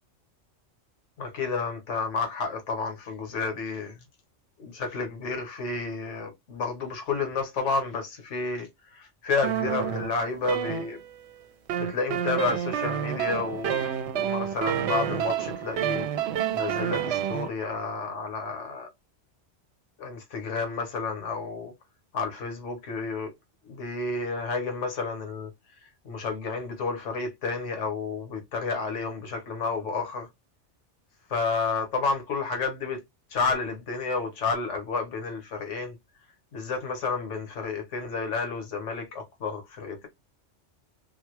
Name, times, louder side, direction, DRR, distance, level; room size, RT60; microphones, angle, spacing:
voice 1, 1.2-4.0 4.6-11.0 11.8-13.8 14.1-16.1 16.5-18.9 20.0-21.7 22.1-23.3 23.7-25.5 26.0-30.3 31.3-33.0 33.3-36.0 36.5-40.1, left 4 dB, 75° left, 1.4 m, -31 dB
sound 1, 9.4-11.3 11.7-17.5, right 10 dB, 70° right, 0.8 m, -29 dB
4.0 x 2.2 x 3.1 m
omnidirectional pair, 1.3 m